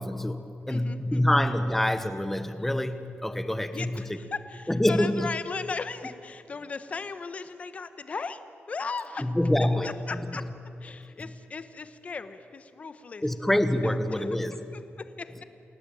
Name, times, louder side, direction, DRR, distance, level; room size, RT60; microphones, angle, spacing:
voice 1, 0.0-3.9 4.7-5.3 9.2-9.9 13.2-14.6, left 1 dB, 5° left, 10 dB, 1.2 m, -26 dB
voice 2, 0.7-1.4 3.7-8.4 8.7-9.3 9.6-10.4 10.8-13.3 13.8-14.3 14.7-15.4, left 4 dB, 35° left, 11 dB, 1.2 m, -37 dB
29.0 x 17.5 x 9.0 m, 2.7 s
wide cardioid pair, 170°, 4 cm